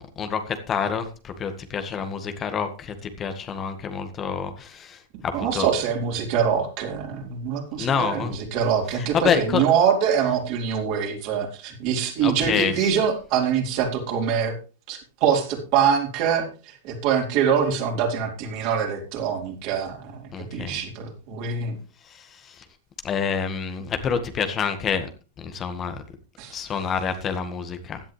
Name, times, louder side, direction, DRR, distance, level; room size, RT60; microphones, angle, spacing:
voice 1, 0.0-5.7 7.8-8.3 9.0-9.6 12.2-12.9 20.3-20.8 22.1-22.6 23.0-25.1 25.4-26.0 26.5-28.0, left 6 dB, 30° left, 8 dB, 1.7 m, -27 dB
voice 2, 5.3-14.6 14.9-21.8 26.4-26.5, right 7 dB, 50° right, 1 dB, 4.2 m, -24 dB
16.0 x 10.5 x 3.4 m, 0.34 s
hypercardioid pair, 100°, 0 cm